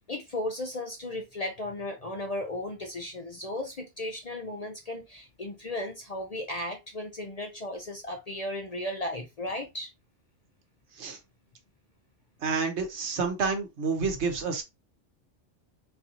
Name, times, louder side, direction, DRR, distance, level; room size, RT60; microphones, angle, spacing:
voice 1, 0.1-9.9, left 1 dB, 45° left, 0.5 m, -35 dB
voice 2, 12.4-14.6, right 5 dB, 75° right, 1.2 m, -29 dB
4.0 x 2.7 x 2.8 m
omnidirectional pair, 1.2 m